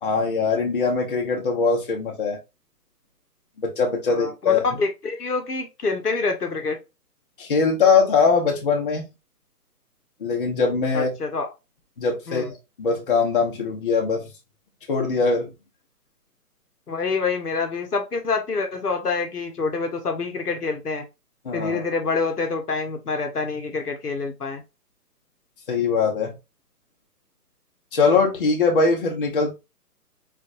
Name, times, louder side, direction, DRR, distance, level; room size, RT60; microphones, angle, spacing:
voice 1, 0.0-2.4 3.6-4.6 7.4-9.1 10.2-11.1 12.0-14.2 14.9-15.5 21.4-21.8 25.7-26.3 27.9-29.5, left 4 dB, 35° left, 0.8 m, -21 dB
voice 2, 4.1-6.8 10.9-11.5 12.3-12.5 16.9-21.0 21.5-24.6, left 4 dB, 70° left, 0.9 m, -26 dB
3.8 x 2.6 x 2.5 m
figure-of-eight pair, 140°, 48 cm